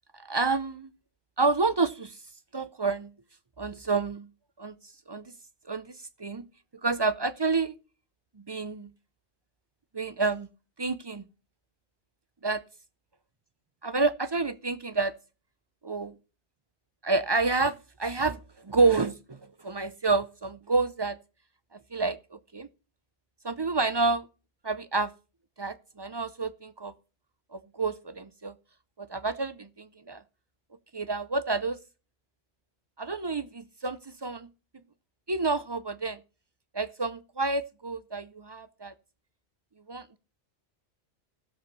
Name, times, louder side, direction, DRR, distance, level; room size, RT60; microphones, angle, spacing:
voice 1, 0.1-0.9 1.4-2.2 2.5-3.1 3.6-4.3 4.6-4.8 5.1-5.3 5.7-5.9 6.2-6.5 6.8-7.8 8.5-8.9 9.9-10.5 10.8-11.2 12.4-12.6 13.8-15.1 15.8-16.1 17.0-21.2 21.7-22.7 23.4-24.3 24.6-25.1 25.6-26.9 27.5-28.5 29.0-30.2 30.9-31.8 33.0-34.5 35.3-36.2 36.7-38.9 39.9-40.2, right 3 dB, 35° right, 0.4 m, -29 dB
16.0 x 7.2 x 4.0 m
omnidirectional pair, 1.2 m